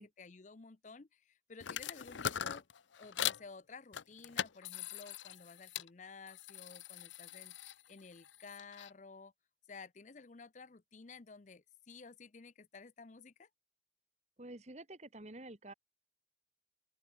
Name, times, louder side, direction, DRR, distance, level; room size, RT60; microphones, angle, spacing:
voice 1, 0.2-2.6 3.0-9.3 9.7-13.5, left 4 dB, 40° left, 0.6 m, -54 dB
sound 1, 1.6-3.5 3.9-5.9 6.3-8.9, left 9 dB, 85° left, 0.7 m, -41 dB
voice 2, 14.4-15.7, right 2 dB, 40° right, 1.8 m, -49 dB
open air
head